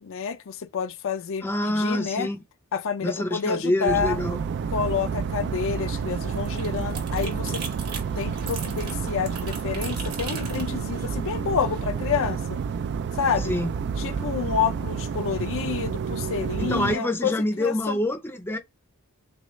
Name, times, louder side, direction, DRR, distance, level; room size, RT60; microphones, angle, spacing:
voice 1, 0.0-2.3 2.7-4.2 4.7-7.7 8.2-12.6 13.2-13.5 14.0-18.0, left 6 dB, 60° left, 0.5 m, -29 dB
voice 2, 1.4-2.4 3.0-4.4 13.4-13.7 16.6-18.6, left 1 dB, 10° left, 0.6 m, -26 dB
sound 1, 3.9-17.0, right 6 dB, 50° right, 0.3 m, -30 dB
sound 2, 5.8-11.8, right 4 dB, 85° right, 2.0 m, -39 dB
6.1 x 2.4 x 3.1 m
head